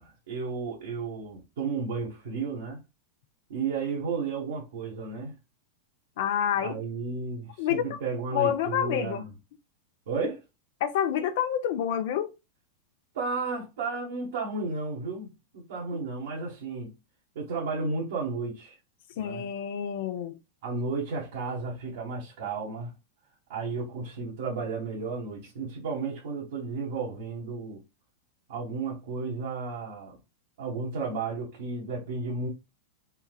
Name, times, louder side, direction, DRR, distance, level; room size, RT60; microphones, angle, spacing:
voice 1, 0.0-2.8 3.5-5.3 6.6-9.3 10.1-10.4 13.1-16.9 17.3-18.8 19.2-19.5 20.6-22.9 23.5-27.8 28.5-30.2 30.6-32.5, right 4 dB, 75° right, 1.7 m, -33 dB
voice 2, 6.2-6.8 7.6-8.0 8.3-9.2 10.8-12.3 15.9-16.0 19.2-20.3, left 9 dB, 65° left, 0.9 m, -28 dB
4.4 x 3.5 x 2.4 m
hypercardioid pair, 115°, 0 cm